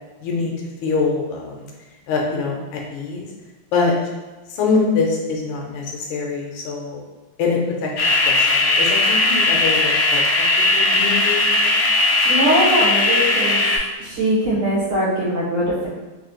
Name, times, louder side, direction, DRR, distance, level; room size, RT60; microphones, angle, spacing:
voice 1, 0.2-0.5 0.8-1.7 2.1-3.3 3.7-4.0 4.5-7.0 7.4-11.8, left 4 dB, 70° left, -1 dB, 1.4 m, -24 dB
sound 1, 8.0-13.8, left 2 dB, 90° left, 0.7 m, -18 dB
voice 2, 12.2-13.6 14.0-15.9, right 1 dB, 80° right, -8 dB, 2.2 m, -21 dB
4.2 x 2.8 x 3.0 m, 1.2 s
omnidirectional pair, 2.3 m